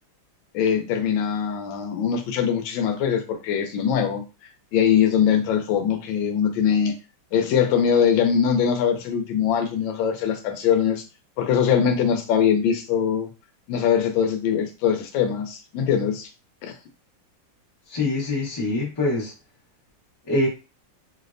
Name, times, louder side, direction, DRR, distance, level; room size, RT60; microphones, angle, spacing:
voice 1, 0.5-4.2 4.7-6.9 7.3-11.0 11.4-13.3 13.7-16.3 16.6-16.8, left 8 dB, 80° left, 6 dB, 1.3 m, -22 dB
voice 2, 17.9-19.3 20.3-20.5, left 2 dB, 40° left, -3 dB, 0.3 m, -24 dB
3.3 x 2.0 x 2.4 m, 0.29 s
omnidirectional pair, 2.2 m